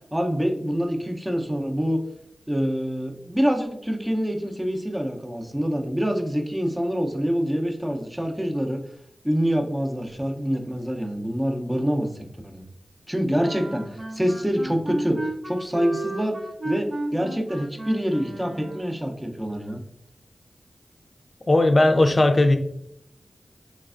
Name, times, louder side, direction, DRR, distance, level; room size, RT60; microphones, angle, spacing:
voice 1, 0.1-2.0 2.5-8.8 9.2-12.6 13.1-16.4 16.6-19.8, equal, 15° right, 3 dB, 0.6 m, -26 dB
sound 1, 13.4-19.0, right 2 dB, 60° right, 0.7 m, -34 dB
voice 2, 21.5-22.6, left 2 dB, 45° left, 6 dB, 0.5 m, -17 dB
3.2 x 3.2 x 2.4 m, 0.75 s
cardioid pair, 45°, 0 cm